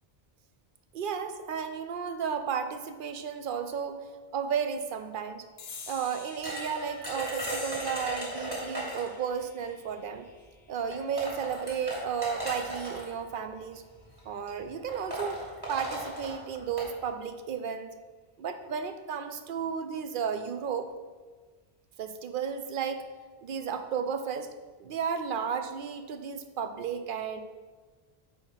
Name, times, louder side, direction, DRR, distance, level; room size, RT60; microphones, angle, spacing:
voice 1, 0.9-4.1 4.3-5.4 5.9-10.2 10.7-13.8 14.3-15.4 15.7-17.9 18.4-20.9 22.0-23.0 23.4-24.5 24.8-27.4, right 7 dB, 60° right, 8 dB, 0.7 m, -33 dB
sound 1, 5.6-12.4, left 3 dB, 75° left, 1.1 m, -48 dB
sound 2, 6.4-9.2 10.3-10.4 10.9-13.1 14.0-14.2 14.5-14.6 14.9-16.9, right 1 dB, 20° right, 2.0 m, -36 dB
8.8 x 3.0 x 5.6 m, 1.4 s
omnidirectional pair, 1.1 m